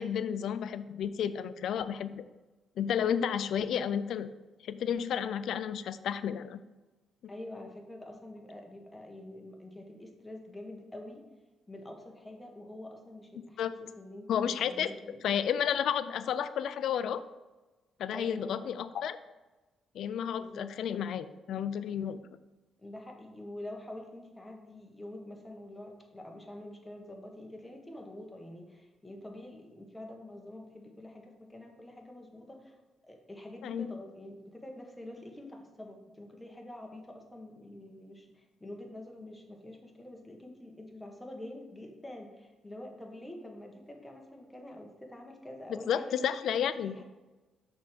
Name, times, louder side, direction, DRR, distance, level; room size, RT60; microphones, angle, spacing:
voice 1, 0.0-2.2 2.8-4.3 4.6-6.6 13.6-13.7 14.3-14.9 15.2-17.2 18.0-19.2 19.9-22.2 33.6-34.0 45.7-47.0, left 8 dB, 70° left, 13 dB, 0.4 m, -32 dB
voice 2, 7.3-11.3 11.7-15.5 18.1-18.6 20.4-20.7 22.8-32.7 33.0-47.0, left 1 dB, 10° left, 1 dB, 1.3 m, -46 dB
6.3 x 3.5 x 5.9 m, 1.2 s
cardioid pair, 90°, 0 cm